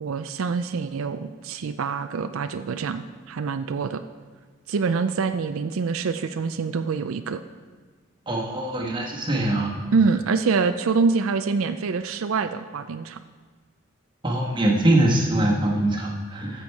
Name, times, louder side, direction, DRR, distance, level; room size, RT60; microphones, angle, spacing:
voice 1, 0.0-4.0 4.7-7.4 9.9-13.2, right 5 dB, 90° right, 9 dB, 0.4 m, -25 dB
voice 2, 8.3-9.7 14.2-16.6, right 1 dB, 25° right, -2 dB, 1.5 m, -23 dB
13.0 x 6.9 x 4.7 m, 1.5 s
head